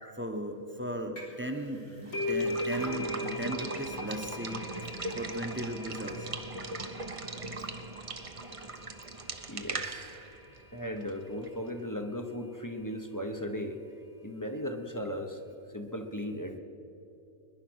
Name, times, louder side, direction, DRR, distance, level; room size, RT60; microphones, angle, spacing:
voice 1, 0.2-4.6 5.1-6.4, equal, 10° right, 5 dB, 0.9 m, -37 dB
sound 1, 1.2-1.5 1.7-9.0, left 1 dB, 80° left, 3.7 m, -38 dB
Water / Water tap faucet / Liquid, 2.1-11.7, right 3 dB, 30° right, 0.7 m, -39 dB
voice 2, 9.5-10.2 10.7-13.8 14.2-15.4 15.7-16.6, left 1 dB, 20° left, 6 dB, 0.8 m, -37 dB
21.5 x 10.5 x 6.3 m, 3.0 s
omnidirectional pair, 1.4 m